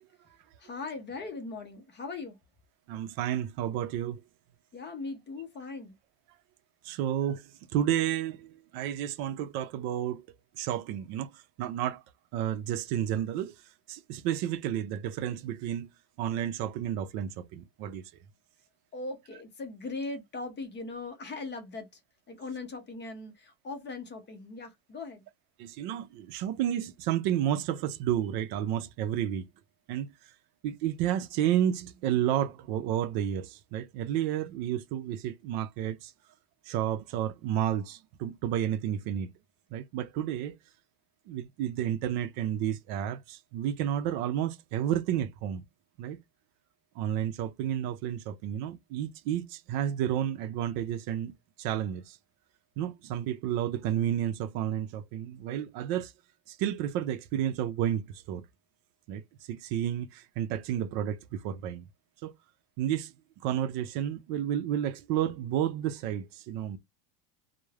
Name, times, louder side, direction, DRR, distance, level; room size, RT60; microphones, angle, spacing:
voice 1, 0.6-2.4 4.7-5.9 18.9-22.0 22.3-25.2, left 3 dB, 25° left, 0.5 m, -39 dB
voice 2, 2.9-4.2 6.8-10.2 10.6-12.0 12.3-13.5 13.9-15.9 16.2-18.0 25.6-29.4 29.9-30.1 30.6-36.1 36.7-39.3 39.7-40.6 41.3-45.6 46.0-46.2 47.0-52.2 52.8-56.1 56.5-58.4 59.1-59.2 59.5-61.8 62.2-62.3 62.8-63.1 63.4-66.8, right 10 dB, 55° right, 0.5 m, -31 dB
3.0 x 2.0 x 2.3 m
supercardioid pair, 125°, 48 cm